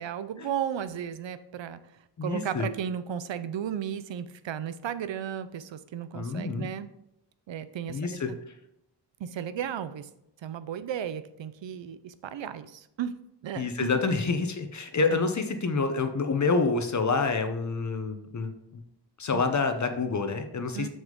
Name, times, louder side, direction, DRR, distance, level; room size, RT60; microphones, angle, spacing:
voice 1, 0.0-1.8 2.2-6.9 7.5-8.2 9.2-10.1 10.4-13.1 13.4-14.0 15.1-15.2 19.3-19.4 20.7-20.9, right 9 dB, 85° right, 13 dB, 0.6 m, -34 dB
voice 2, 2.2-2.7 6.1-6.7 7.9-8.3 13.5-18.8 19.2-20.9, left 4 dB, 40° left, 7 dB, 0.8 m, -27 dB
7.0 x 6.2 x 3.8 m, 0.81 s
wide cardioid pair, 165°, 44 cm